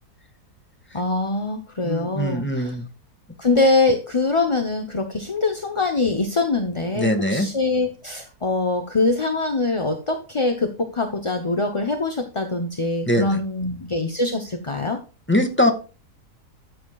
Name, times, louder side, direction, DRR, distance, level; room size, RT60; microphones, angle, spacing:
voice 1, 0.9-2.7 3.4-15.0, left 3 dB, 25° left, 5 dB, 0.8 m, -23 dB
voice 2, 1.8-2.9 7.0-7.5 13.1-13.4 15.3-15.7, left 1 dB, 5° left, 5 dB, 1.8 m, -22 dB
13.5 x 7.6 x 2.4 m, 0.34 s
omnidirectional pair, 1.7 m